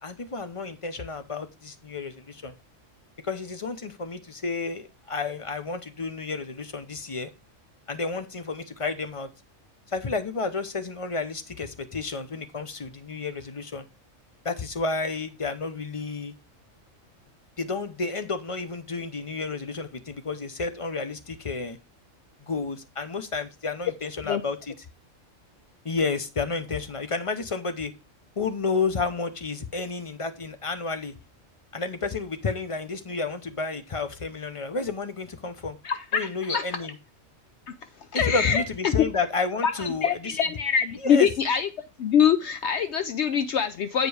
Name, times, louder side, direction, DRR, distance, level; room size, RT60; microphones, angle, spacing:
voice 1, 0.0-2.5 3.2-7.3 7.9-9.3 9.9-13.9 14.4-16.3 17.6-21.8 22.5-24.7 25.8-27.9 28.4-31.1 31.7-35.8 36.1-36.9 38.1-40.6 41.0-41.3, left 4 dB, 30° left, 9 dB, 0.7 m, -31 dB
voice 2, 35.8-36.6 38.1-38.9 39.6-41.7 42.0-44.1, left 7 dB, 65° left, 10 dB, 0.8 m, -24 dB
8.3 x 5.0 x 4.9 m, 0.28 s
omnidirectional pair, 1.4 m